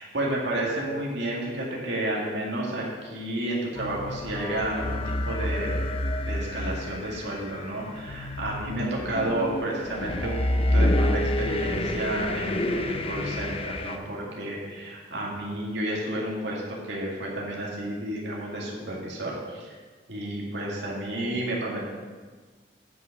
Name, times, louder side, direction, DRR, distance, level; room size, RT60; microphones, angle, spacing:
voice 1, 0.0-5.9 6.1-10.4 10.7-19.8 20.1-21.9, right 1 dB, 65° right, -4 dB, 2.0 m, -31 dB
sound 1, 3.8-14.0, left 1 dB, 30° left, 0.5 m, -28 dB
9.2 x 6.2 x 5.2 m, 1.4 s
head